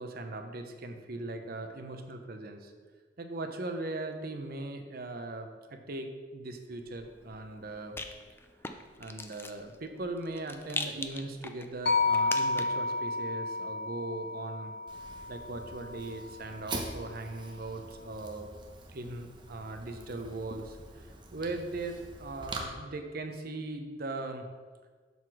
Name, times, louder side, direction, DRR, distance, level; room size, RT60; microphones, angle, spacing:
voice 1, 0.0-2.7 3.2-8.0 9.0-14.7 15.3-18.5 18.9-24.5, right 2 dB, 55° right, 6 dB, 0.7 m, -39 dB
Rattle, 6.8-12.9, left 3 dB, 15° left, 0.4 m, -42 dB
sound 1, 11.9-16.1, left 3 dB, 65° left, 0.6 m, -31 dB
Fire, 14.9-22.6, right 2 dB, 25° right, 0.8 m, -44 dB
7.2 x 4.0 x 6.0 m, 1.5 s
head